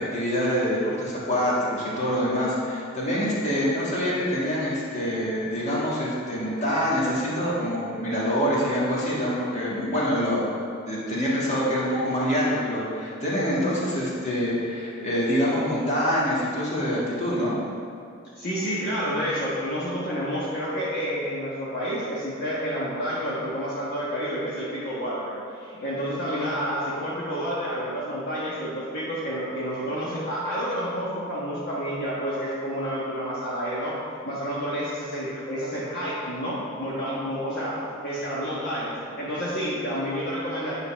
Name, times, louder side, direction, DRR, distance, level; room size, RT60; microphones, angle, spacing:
voice 1, 0.0-10.4 10.9-17.6, equal, 35° left, -7 dB, 1.8 m, -25 dB
voice 2, 18.3-34.0 34.2-40.8, equal, 50° left, -8 dB, 1.3 m, -29 dB
9.7 x 4.0 x 5.6 m, 2.5 s
head